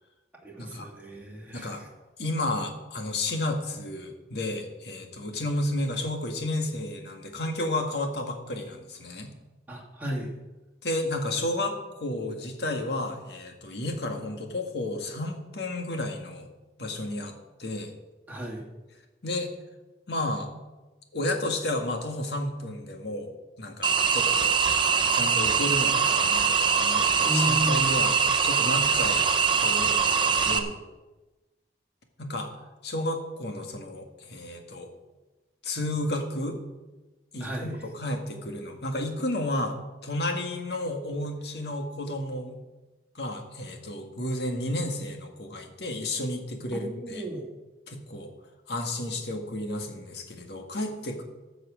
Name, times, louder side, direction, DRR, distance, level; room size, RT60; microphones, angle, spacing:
voice 1, 0.4-1.9 9.7-10.4 18.3-18.6 27.2-28.0 37.4-37.9 46.7-47.5, equal, 10° right, -2 dB, 2.2 m, -33 dB
voice 2, 2.2-9.3 10.8-16.5 16.8-17.9 19.2-19.5 20.1-20.5 21.1-23.3 23.6-24.6 25.1-28.2 28.4-29.3 29.6-30.8 32.2-32.5 32.8-34.9 35.6-36.6 37.3-39.8 40.0-42.6 43.2-47.2 47.9-48.3 48.7-51.2, left 1 dB, 65° left, 4 dB, 1.8 m, -32 dB
sound 1, 23.8-30.6, right 6 dB, 25° right, 0.8 m, -23 dB
13.0 x 6.2 x 7.6 m, 1.1 s
head